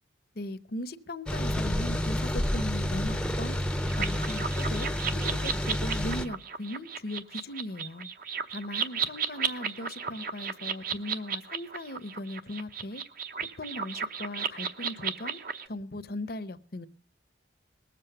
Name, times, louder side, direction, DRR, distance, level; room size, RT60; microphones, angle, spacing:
voice 1, 0.3-3.6 4.0-8.1 8.5-13.0 13.4-15.4 15.7-16.9, left 1 dB, 55° left, 0.7 m, -38 dB
sound 1, 1.3-6.3, equal, 5° left, 0.6 m, -29 dB
sound 2, 3.9-15.7, right 7 dB, 50° right, 0.8 m, -34 dB
19.5 x 7.6 x 6.7 m
head